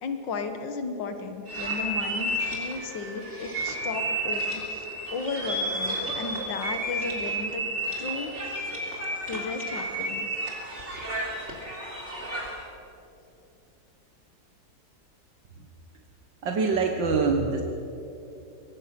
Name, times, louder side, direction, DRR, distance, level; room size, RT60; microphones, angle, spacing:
voice 1, 0.0-7.6 8.0-8.7 9.3-10.3, left 4 dB, 75° left, 7 dB, 2.1 m, -35 dB
sound 1, 1.5-12.7, right 1 dB, 35° right, 3.7 m, -32 dB
voice 2, 16.4-17.6, right 4 dB, 75° right, 3 dB, 2.0 m, -24 dB
23.5 x 19.0 x 6.1 m, 2.9 s
omnidirectional pair, 2.0 m